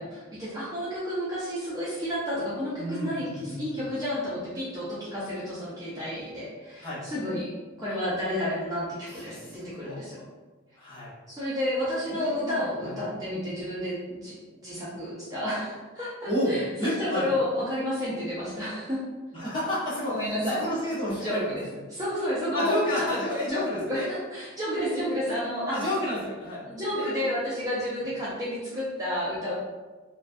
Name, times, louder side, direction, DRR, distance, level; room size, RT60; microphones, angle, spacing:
voice 1, 0.0-7.5 7.8-10.2 11.3-14.3 14.6-19.0 20.0-20.6 21.2-21.6 21.9-23.0 23.5-25.8 26.7-29.5, left 1 dB, 15° right, -9 dB, 0.4 m, -31 dB
voice 2, 2.8-3.8 6.8-7.0 9.1-10.0 10.8-11.1 12.1-12.9 16.3-17.3 19.3-21.6 22.5-24.1 25.7-26.6 26.9-27.1, left 1 dB, 20° left, -10 dB, 0.8 m, -31 dB
2.3 x 2.2 x 2.5 m, 1.3 s
head